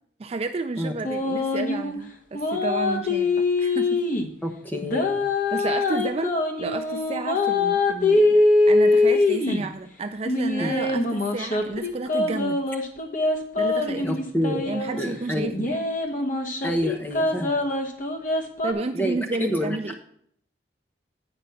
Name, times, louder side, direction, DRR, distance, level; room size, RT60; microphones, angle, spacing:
voice 1, 0.2-4.0 5.5-6.3 6.6-12.6 13.6-14.1 14.7-15.8 18.6-19.9, right 3 dB, 35° right, 7 dB, 0.4 m, -31 dB
sound 1, 1.0-1.9 2.3-4.3 4.8-9.7 10.2-15.0 15.5-18.7, left 2 dB, 45° left, 1.0 m, -23 dB
voice 2, 4.4-5.2 10.6-10.8 14.0-14.7 15.0-15.6 16.6-17.6 18.9-19.8, equal, 10° left, 3 dB, 0.9 m, -28 dB
8.9 x 5.0 x 5.6 m, 0.68 s
head